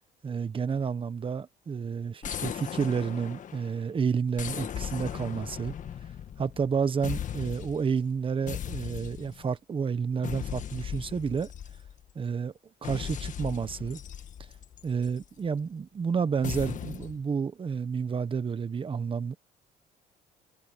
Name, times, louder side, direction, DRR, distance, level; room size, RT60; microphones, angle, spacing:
voice 1, 0.2-5.7 6.4-11.5 12.1-12.5 12.8-14.0 14.8-19.4, right 6 dB, 30° right, 1.3 m, -30 dB
sound 1, 2.2-3.8 4.4-6.7 7.0-7.9 8.5-9.5 10.2-12.1 12.8-15.2 16.4-17.2, left 9 dB, 50° left, 1.6 m, -38 dB
cardioid pair, 110°, 17 cm